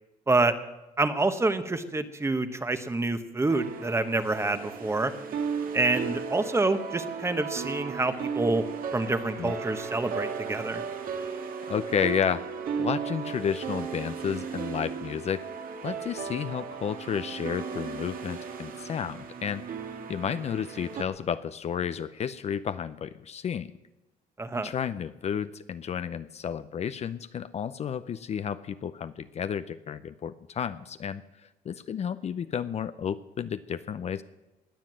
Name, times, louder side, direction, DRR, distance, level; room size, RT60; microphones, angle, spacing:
voice 1, 1.0-5.1 5.7-8.6 8.9-10.8 24.4-24.7, right 2 dB, 15° right, 10 dB, 1.1 m, -27 dB
sound 1, 3.5-21.0, right 6 dB, 55° right, 1.7 m, -35 dB
voice 2, 11.7-12.5 12.8-15.5 15.8-23.7 24.6-31.2 31.7-34.2, left 8 dB, 40° left, 12 dB, 0.6 m, -32 dB
20.5 x 7.5 x 7.6 m, 1.0 s
cardioid pair, 110°, 17 cm